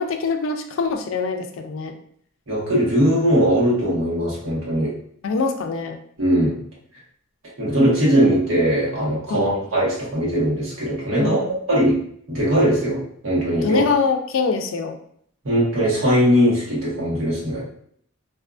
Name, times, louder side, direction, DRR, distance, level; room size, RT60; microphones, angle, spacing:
voice 1, 0.0-2.0 5.2-6.0 9.3-9.6 11.2-11.6 13.6-15.0, left 4 dB, 75° left, 6 dB, 0.4 m, -24 dB
voice 2, 2.5-4.9 6.2-6.6 7.6-11.4 11.7-12.0 12.3-13.8 15.4-17.6, equal, 75° right, -6 dB, 1.2 m, -20 dB
2.7 x 2.4 x 2.3 m, 0.64 s
head